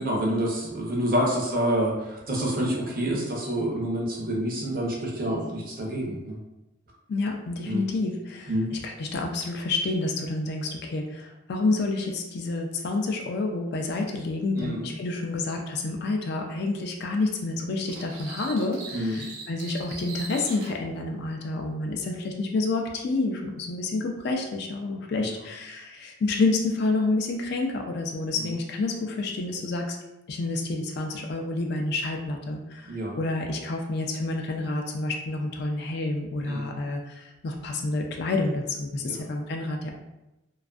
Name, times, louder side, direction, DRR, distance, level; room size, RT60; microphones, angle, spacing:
voice 1, 0.0-6.4 7.6-7.8 8.5-8.7 14.6-14.9 18.9-19.2 25.2-25.4 28.3-28.5 32.9-33.2 36.4-36.7 39.0-39.2, right 1 dB, 40° right, -2 dB, 0.6 m, -28 dB
voice 2, 7.1-30.0 30.3-39.9, left 2 dB, 50° left, 2 dB, 0.3 m, -29 dB
sound 1, 17.9-20.8, right 3 dB, 85° right, 0.6 m, -41 dB
2.4 x 2.3 x 2.3 m, 0.94 s
head